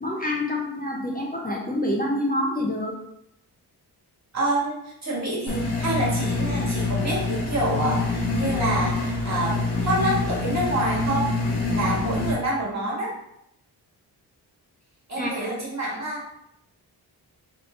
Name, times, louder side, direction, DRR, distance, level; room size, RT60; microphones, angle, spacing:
voice 1, 0.0-3.0 15.2-15.5, left 1 dB, 25° left, -2 dB, 0.5 m, -27 dB
voice 2, 4.3-4.7 5.0-13.1 15.1-16.2, right 1 dB, 40° right, -4 dB, 1.5 m, -27 dB
sound 1, 5.5-12.3, left 3 dB, 70° left, 1.1 m, -26 dB
4.3 x 3.1 x 3.1 m, 0.78 s
wide cardioid pair, 155°, 41 cm